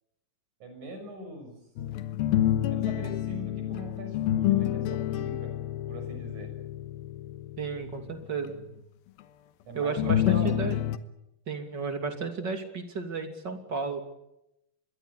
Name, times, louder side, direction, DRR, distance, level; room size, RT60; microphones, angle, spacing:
voice 1, 0.6-1.6 2.7-5.5 5.9-6.5 9.7-10.7, right 1 dB, 55° right, 5 dB, 8.1 m, -41 dB
sound 1, 1.8-8.5 10.0-11.0, left 12 dB, 85° left, 3.0 m, -28 dB
voice 2, 7.6-8.6 9.7-10.8 11.5-14.0, right 4 dB, 30° right, 6 dB, 3.1 m, -33 dB
26.0 x 22.0 x 8.4 m, 0.86 s
omnidirectional pair, 4.2 m